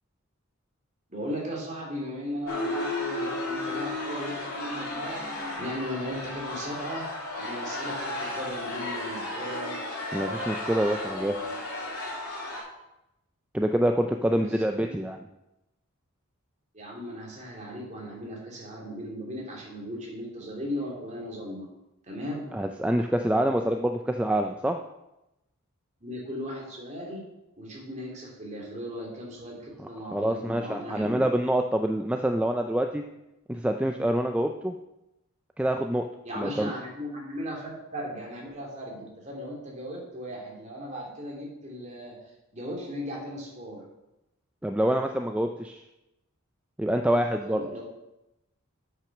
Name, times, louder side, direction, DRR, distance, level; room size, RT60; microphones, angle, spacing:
voice 1, 1.1-7.0 7.3-9.8 14.3-14.9 16.7-21.7 22.0-22.5 26.0-27.2 27.6-31.2 36.2-42.2 42.5-43.8 47.4-47.8, equal, 35° right, -2 dB, 2.6 m, -37 dB
sound 1, 2.5-12.6, left 2 dB, 90° left, 2.8 m, -33 dB
voice 2, 10.1-11.4 13.5-15.2 22.5-24.8 30.1-33.0 33.5-34.7 35.6-36.1 36.4-36.7 44.6-45.8 46.8-47.8, right 1 dB, 5° right, 5 dB, 0.3 m, -26 dB
8.2 x 6.1 x 5.8 m, 0.92 s
head